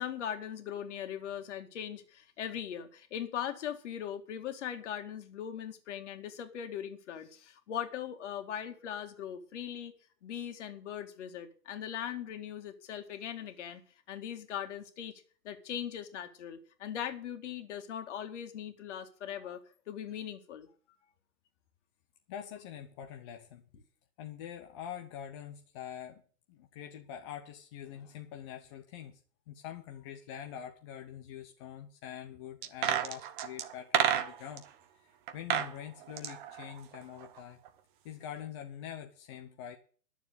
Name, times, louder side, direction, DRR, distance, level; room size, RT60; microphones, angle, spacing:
voice 1, 0.0-9.9 10.2-13.8 14.1-15.1 15.4-19.6 19.9-20.7, left 9 dB, 45° left, 2.3 m, -40 dB
voice 2, 22.3-23.6 24.2-26.2 26.5-29.2 29.5-34.6 35.3-37.6 38.0-39.8, left 9 dB, 20° left, 0.7 m, -45 dB
sound 1, 32.6-34.6 35.3-35.7 36.0-37.4 37.7-37.8, right 10 dB, 30° right, 1.1 m, -31 dB
11.5 x 7.2 x 8.3 m
hypercardioid pair, 140°, 48 cm